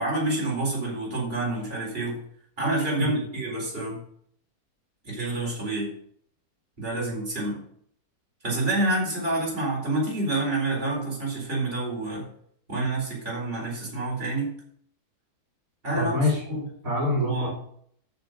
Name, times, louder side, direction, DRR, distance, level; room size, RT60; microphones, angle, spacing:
voice 1, 0.0-2.2 2.6-4.0 5.0-5.9 6.8-7.6 8.4-12.3 12.7-14.5 15.8-16.1 16.5-16.6 17.2-17.5, right 2 dB, 35° right, -4 dB, 4.4 m, -28 dB
voice 2, 15.9-16.6 16.8-17.5, left 1 dB, 60° right, -4 dB, 4.2 m, -26 dB
10.5 x 7.0 x 6.6 m, 0.65 s
omnidirectional pair, 1.6 m